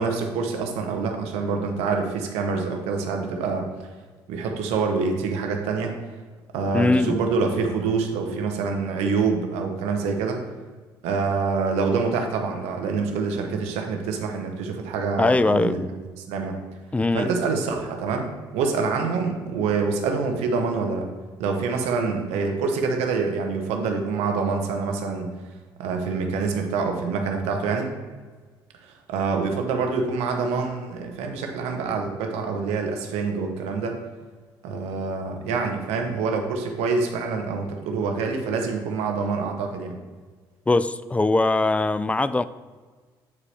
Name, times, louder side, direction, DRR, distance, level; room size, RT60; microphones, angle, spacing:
voice 1, 0.0-3.7 4.3-6.0 6.5-10.4 11.0-15.8 16.3-16.6 17.1-21.1 21.4-25.3 25.8-27.9 28.8-34.0 34.6-39.9, right 4 dB, 75° right, 1.0 m, -26 dB
voice 2, 6.7-7.2 15.2-15.9 16.9-17.3 40.7-42.4, left 2 dB, 10° left, 0.3 m, -21 dB
8.3 x 4.8 x 3.3 m
hypercardioid pair, 60°, 11 cm